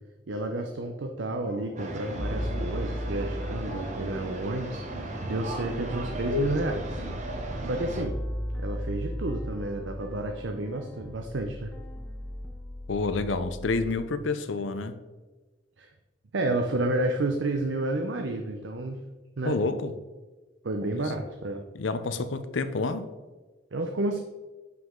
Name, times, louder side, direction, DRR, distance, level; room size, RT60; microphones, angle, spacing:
voice 1, 0.3-7.0 7.6-8.1 8.6-11.7 15.8-15.9 16.3-19.0 19.4-19.5 20.6-21.6 23.7-24.2, right 2 dB, 70° right, 4 dB, 0.6 m, -30 dB
sound 1, 1.2-6.1 6.3-6.6, left 1 dB, 35° left, 0.9 m, -45 dB
sound 2, 1.8-8.0, equal, 40° right, 0.9 m, -35 dB
sound 3, 2.2-13.9, equal, 5° left, 0.5 m, -37 dB
voice 2, 12.9-14.9 19.4-19.9 20.9-21.1 21.7-23.1, left 3 dB, 80° left, 11 dB, 0.6 m, -29 dB
7.4 x 5.8 x 3.7 m, 1.2 s
head